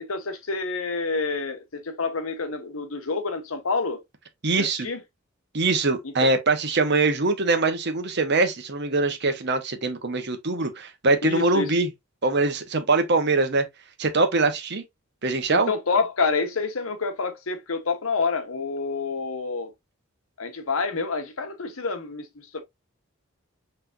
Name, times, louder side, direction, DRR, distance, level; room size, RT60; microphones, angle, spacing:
voice 1, 0.0-4.0 4.6-5.0 6.0-6.3 11.2-11.7 15.5-19.7 20.4-22.6, left 4 dB, 85° left, 1.0 m, -28 dB
voice 2, 4.4-4.9 5.5-11.9 12.2-13.6 14.0-14.8 15.2-15.7, right 3 dB, 55° right, 1.1 m, -23 dB
5.9 x 3.3 x 2.5 m
head